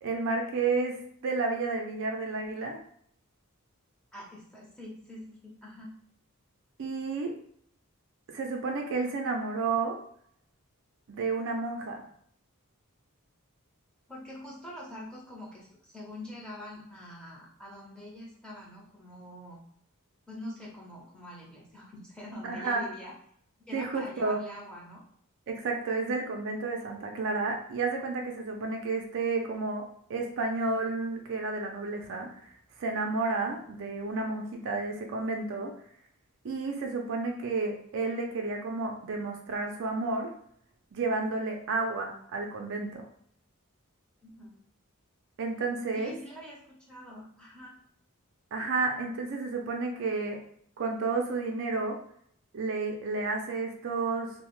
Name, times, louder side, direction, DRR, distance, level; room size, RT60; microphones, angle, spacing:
voice 1, 0.0-2.8 6.8-7.3 8.3-10.0 11.1-12.0 22.4-22.8 23.7-24.4 25.5-35.7 36.4-40.3 40.9-43.1 45.4-46.1 48.5-50.4 50.8-52.0 52.5-54.4, right 3 dB, 55° right, 2 dB, 0.4 m, -31 dB
voice 2, 4.1-5.9 14.1-19.6 20.3-23.1 23.7-25.0 44.2-44.6 45.9-47.7, left 1 dB, 5° left, -5 dB, 0.7 m, -45 dB
2.8 x 2.0 x 3.0 m, 0.65 s
head